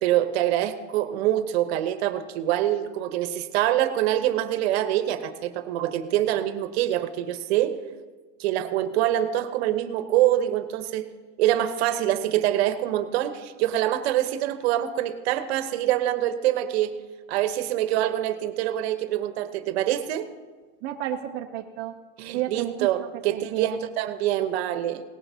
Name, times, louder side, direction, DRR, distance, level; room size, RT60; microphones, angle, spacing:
voice 1, 0.0-7.8 8.4-11.1 11.4-16.9 17.3-20.3 22.2-25.0, right 12 dB, 55° right, 11 dB, 1.0 m, -25 dB
voice 2, 20.8-21.9 22.3-22.9 23.3-23.9, right 11 dB, 30° right, 2 dB, 0.6 m, -31 dB
18.0 x 15.0 x 2.8 m, 1.4 s
supercardioid pair, 145°, 38 cm